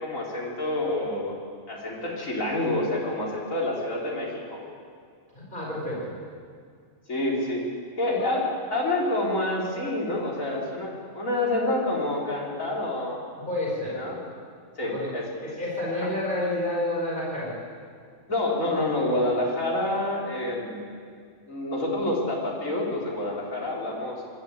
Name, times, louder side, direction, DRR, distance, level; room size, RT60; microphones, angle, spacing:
voice 1, 0.0-1.3 1.7-4.6 7.1-7.6 8.0-13.2 13.8-14.2 14.8-15.2 15.9-16.1 18.3-20.8 21.5-24.2, left 1 dB, 85° left, -3 dB, 4.3 m, -28 dB
voice 2, 5.4-6.1 13.5-14.0 14.8-15.1 15.4-17.6, left 1 dB, 40° left, -4 dB, 5.4 m, -29 dB
22.0 x 13.5 x 8.7 m, 2.1 s
omnidirectional pair, 1.3 m